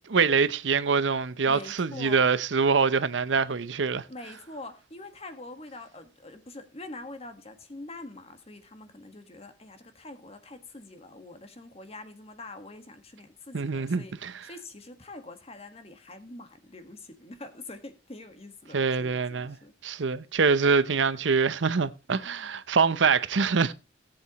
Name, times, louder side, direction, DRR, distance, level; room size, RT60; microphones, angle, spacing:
voice 1, 0.0-4.0 13.5-14.3 18.7-19.6 19.8-23.7, right 5 dB, 80° right, 0.7 m, -24 dB
voice 2, 1.4-2.3 4.1-19.7, left 2 dB, 35° left, 1.5 m, -45 dB
18.0 x 7.8 x 3.0 m
head